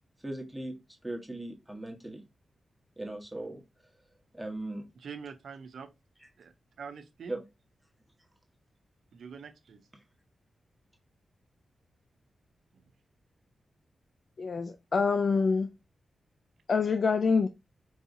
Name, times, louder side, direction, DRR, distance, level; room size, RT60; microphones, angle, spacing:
voice 1, 0.2-0.7 1.0-2.2 3.0-3.6 4.3-4.8 7.3-7.4, right 1 dB, 10° right, 1.1 m, -38 dB
voice 2, 5.0-5.9 6.4-7.4 9.1-9.8 12.7-12.8, right 6 dB, 75° right, 0.6 m, -45 dB
voice 3, 14.4-15.7 16.7-17.5, left 5 dB, 60° left, 0.3 m, -26 dB
4.7 x 2.7 x 2.6 m
cardioid pair, 60°, 0 cm